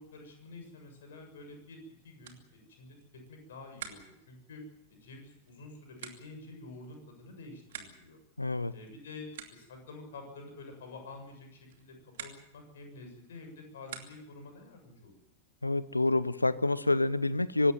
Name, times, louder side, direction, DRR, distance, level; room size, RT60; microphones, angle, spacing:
voice 1, 0.0-4.6 4.9-8.2 8.7-15.2, left 3 dB, 60° left, 4 dB, 7.1 m, -49 dB
sound 1, 2.2-14.5, right 9 dB, 60° right, 2.7 m, -52 dB
voice 2, 8.4-8.7 15.6-17.7, left 2 dB, 85° left, 18 dB, 0.9 m, -27 dB
25.0 x 13.0 x 9.4 m, 0.82 s
figure-of-eight pair, 90°, 0 cm